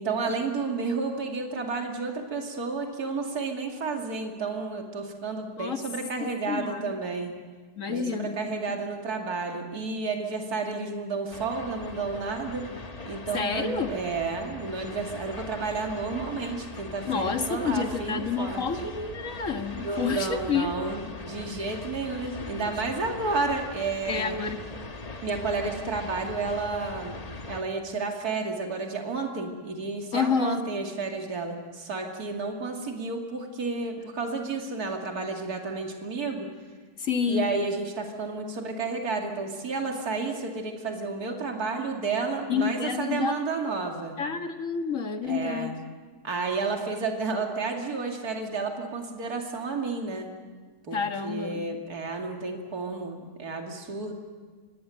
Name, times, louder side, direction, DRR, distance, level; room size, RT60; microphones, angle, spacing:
voice 1, 0.0-7.3 7.9-12.7 13.0-18.7 19.8-24.4 25.2-27.2 27.5-36.5 37.3-44.2 45.2-45.8 46.2-50.3 50.9-54.1, right 4 dB, 60° right, 2 dB, 3.0 m, -31 dB
voice 2, 6.2-6.9 7.8-8.6 13.3-14.0 17.1-20.9 22.6-23.0 24.1-24.6 30.1-30.6 37.0-37.5 42.5-43.4 44.2-45.7 50.9-51.6, left 5 dB, 50° left, 6 dB, 1.8 m, -29 dB
sound 1, 11.3-27.6, left 3 dB, 25° left, 1.0 m, -41 dB
26.5 x 19.0 x 9.1 m, 1.5 s
omnidirectional pair, 1.8 m